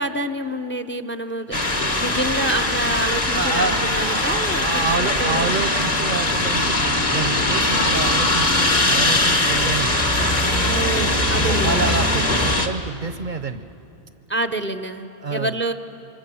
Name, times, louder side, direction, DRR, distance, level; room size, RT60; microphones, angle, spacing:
voice 1, 0.0-1.6 2.0-5.5 10.6-11.9 14.3-15.7, right 1 dB, 15° left, 9 dB, 0.7 m, -27 dB
sound 1, 1.5-12.7, left 2 dB, 40° left, 1.6 m, -20 dB
voice 2, 3.3-9.9 11.3-13.7 15.2-15.5, right 4 dB, 55° right, 10 dB, 0.9 m, -28 dB
26.0 x 24.5 x 7.0 m, 2.8 s
omnidirectional pair, 1.0 m